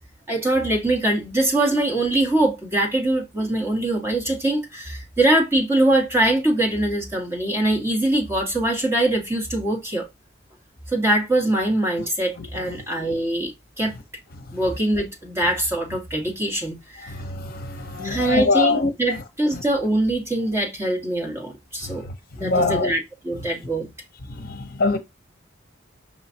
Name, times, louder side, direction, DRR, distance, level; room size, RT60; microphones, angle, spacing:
voice 1, 0.3-10.1 10.9-13.9 14.5-17.1 18.0-22.1 22.4-23.9, right 1 dB, 15° right, 2.0 m, -23 dB
voice 2, 12.4-12.8 17.1-18.9 21.8-21.9 22.4-22.9 24.3-25.0, left 3 dB, 50° left, 0.9 m, -24 dB
5.9 x 5.5 x 2.9 m
head